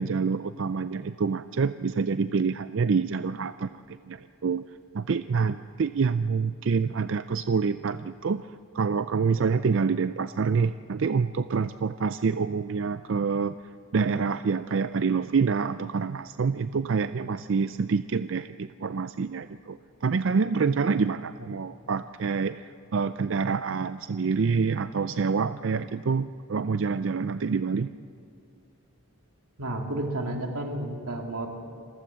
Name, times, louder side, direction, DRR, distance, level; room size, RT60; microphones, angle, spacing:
voice 1, 0.0-4.6 4.9-8.5 8.7-13.6 13.9-27.9, right 5 dB, 55° right, 12 dB, 0.4 m, -27 dB
voice 2, 29.6-31.5, right 1 dB, 85° right, 2 dB, 2.9 m, -31 dB
28.0 x 15.0 x 7.5 m, 2.6 s
head